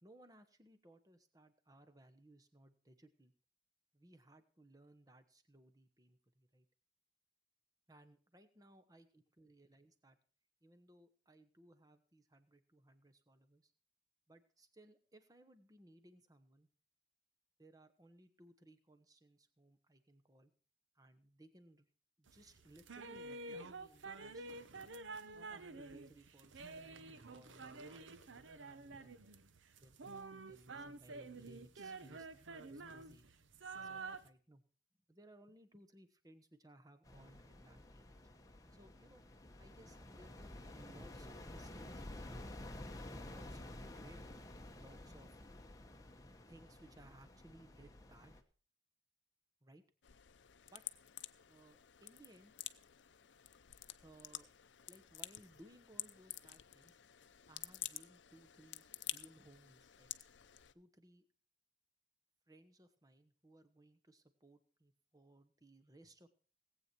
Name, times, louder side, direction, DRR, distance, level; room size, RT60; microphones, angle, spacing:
voice 1, 0.0-3.3 3.9-6.7 7.9-10.2 10.6-13.7 14.3-16.7 17.6-20.5 20.9-21.9 22.2-24.7 25.3-28.0 28.6-29.2 29.7-33.3 33.7-34.6 35.1-38.2 38.7-39.2 39.6-42.6 43.1-44.2 44.8-45.3 46.5-48.4 49.6-49.8 50.6-50.8 51.5-52.5 54.0-54.5 54.9-57.0 57.5-60.1 60.7-61.2 62.5-66.3, right 1 dB, 20° right, 8 dB, 1.1 m, -63 dB
sound 1, 22.3-34.3, right 3 dB, 90° right, 0.9 m, -50 dB
sound 2, 37.0-48.4, left 1 dB, 20° left, 1.0 m, -52 dB
sound 3, 50.0-60.7, left 15 dB, 75° left, 0.6 m, -50 dB
18.5 x 8.4 x 4.5 m, 0.40 s
head